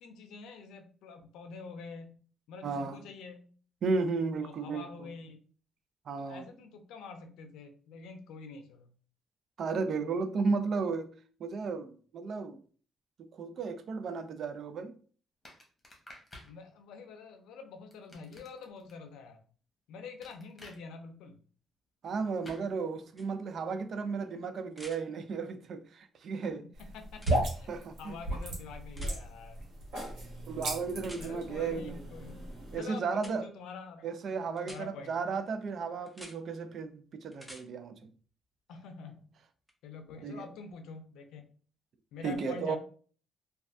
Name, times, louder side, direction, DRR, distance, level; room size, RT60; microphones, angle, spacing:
voice 1, 0.0-2.1 2.5-3.5 4.4-5.4 6.2-8.9 16.4-19.4 19.9-21.4 26.9-29.6 31.2-32.4 32.8-34.1 34.6-35.1 38.7-39.2 39.8-41.4 42.1-42.8, left 5 dB, 90° left, 0.5 m, -46 dB
voice 2, 2.6-3.0 3.8-5.1 6.1-6.5 9.6-11.1 11.4-12.6 13.2-14.9 22.0-26.7 27.7-28.2 30.5-32.0 32.7-33.5 34.0-38.0 40.2-40.5 42.2-42.8, right 4 dB, 60° right, 0.4 m, -34 dB
sound 1, 15.4-16.5 17.9-18.9 20.2-20.8 22.4-22.7, left 1 dB, 25° left, 1.0 m, -51 dB
sound 2, 23.2-23.3 24.7-25.0 27.1-27.4 29.0-29.2 31.0-31.2 33.2-33.3 34.6-34.8 36.1-36.4 37.3-37.6 39.7-39.8, equal, ahead, 0.6 m, -48 dB
sound 3, 26.7-32.8, right 1 dB, 75° right, 1.2 m, -35 dB
3.1 x 2.3 x 2.6 m
cardioid pair, 90°, 0 cm